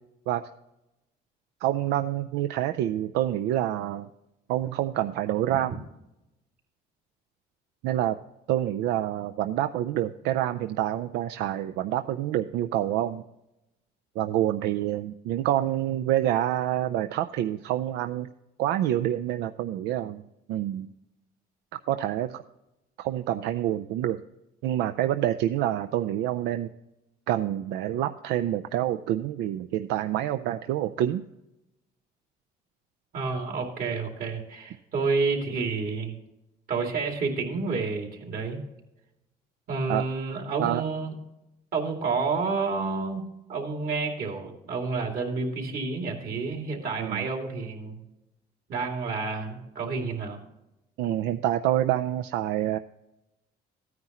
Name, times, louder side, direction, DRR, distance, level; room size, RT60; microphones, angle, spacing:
voice 1, 1.6-4.1 4.5-5.8 7.8-8.2 8.5-13.2 14.2-18.3 18.6-20.2 20.5-20.9 21.9-22.4 23.0-24.2 24.6-26.7 27.3-31.2 39.9-40.0 40.6-40.8 47.0-47.3 51.0-52.8, right 12 dB, 85° right, 9 dB, 0.4 m, -27 dB
voice 2, 33.1-36.1 36.7-38.6 39.7-41.1 41.7-48.0 48.7-50.4, right 4 dB, 60° right, 2 dB, 2.6 m, -29 dB
14.5 x 9.5 x 3.0 m, 0.92 s
cardioid pair, 110°, 17 cm